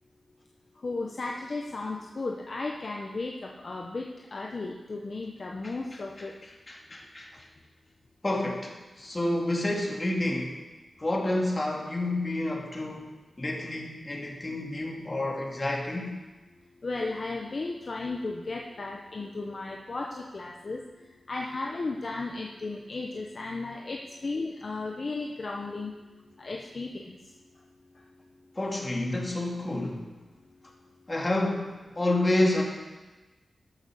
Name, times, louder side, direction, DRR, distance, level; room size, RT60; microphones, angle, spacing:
voice 1, 0.8-6.3 16.8-25.9 26.4-27.2, left 3 dB, 50° left, 0 dB, 1.0 m, -35 dB
voice 2, 6.7-7.3 8.2-10.6 11.0-13.1 13.4-16.1 28.6-30.0 31.1-32.6, left 1 dB, 30° left, 0 dB, 2.4 m, -29 dB
13.5 x 6.7 x 6.5 m, 1.2 s
cardioid pair, 75°, 0 cm